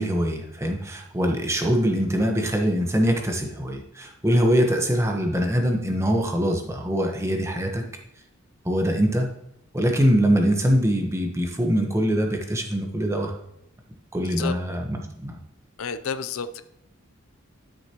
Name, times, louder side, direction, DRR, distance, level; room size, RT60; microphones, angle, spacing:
voice 1, 0.0-7.8 8.6-9.3 9.7-13.3 14.1-15.4, equal, 15° right, 2 dB, 1.1 m, -23 dB
voice 2, 15.8-16.6, left 6 dB, 80° left, 12 dB, 0.6 m, -30 dB
12.0 x 6.4 x 3.0 m, 0.80 s
head